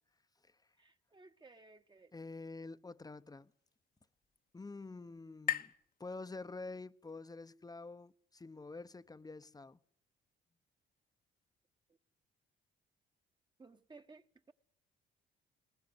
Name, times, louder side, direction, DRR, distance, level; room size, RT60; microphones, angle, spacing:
voice 1, 0.8-2.1 13.6-14.5, right 3 dB, 20° right, 1.3 m, -58 dB
voice 2, 2.1-3.5 4.5-5.7 6.0-9.8, left 3 dB, 20° left, 0.9 m, -48 dB
sound 1, 3.1-6.9, left 10 dB, 45° left, 1.1 m, -44 dB
20.5 x 19.5 x 9.7 m
cardioid pair, 90°, 20 cm